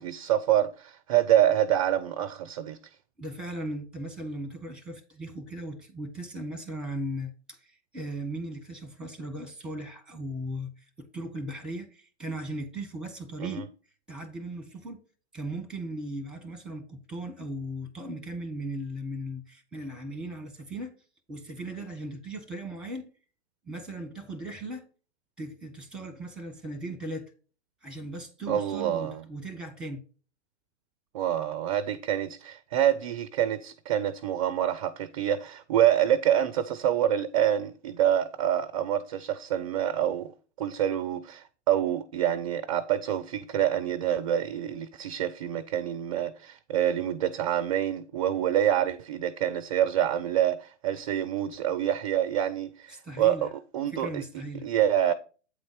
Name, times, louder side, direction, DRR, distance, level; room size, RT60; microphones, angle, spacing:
voice 1, 0.0-2.8 13.4-13.6 28.5-29.2 31.1-40.3 40.6-54.2 54.6-55.1, right 11 dB, 30° right, 0.4 m, -26 dB
voice 2, 3.2-13.7 14.1-15.0 15.3-21.0 21.3-23.1 23.6-24.9 25.4-27.3 27.8-30.0 52.9-53.5 53.9-54.7, right 1 dB, ahead, 1.2 m, -37 dB
8.6 x 4.0 x 4.9 m
figure-of-eight pair, 110°, 35 cm